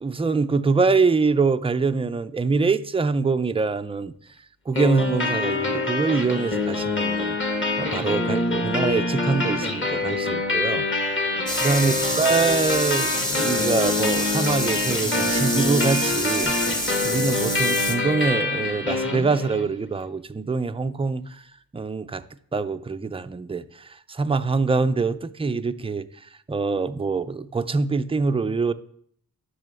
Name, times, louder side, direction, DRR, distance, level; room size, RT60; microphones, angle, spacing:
voice 1, 0.0-4.1 4.7-7.4 7.8-10.9 11.6-13.1 13.4-16.5 17.0-21.4 21.7-22.2 22.5-26.0 26.5-28.7, right 4 dB, 15° right, 0.5 m, -24 dB
sound 1, 4.7-19.7, left 2 dB, 30° left, 1.9 m, -25 dB
sound 2, 11.5-17.9, left 1 dB, 10° left, 1.3 m, -27 dB
10.5 x 6.3 x 8.1 m
wide cardioid pair, 145°, 37 cm